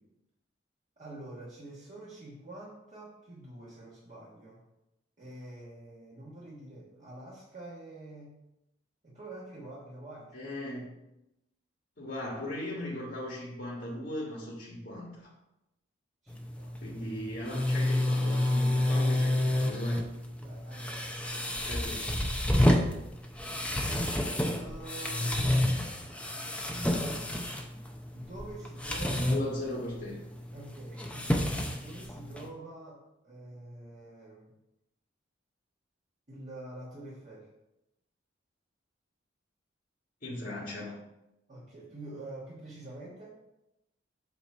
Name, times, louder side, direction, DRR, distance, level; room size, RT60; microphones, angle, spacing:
voice 1, 1.0-4.6 5.2-8.4 9.0-10.4 16.2-17.0 20.4-21.9 22.6-23.2 24.5-25.8 28.1-29.3 30.5-31.4 31.7-34.5 36.3-37.5 41.5-43.4, right 2 dB, 40° right, -8 dB, 1.4 m, -47 dB
voice 2, 10.3-11.0 12.0-15.3 16.8-20.0 21.6-22.1 29.1-30.2 40.2-41.0, left 1 dB, 55° left, -5 dB, 1.5 m, -38 dB
sound 1, 16.3-32.5, left 1 dB, 5° left, 0.5 m, -30 dB
8.0 x 2.9 x 6.0 m, 0.90 s
head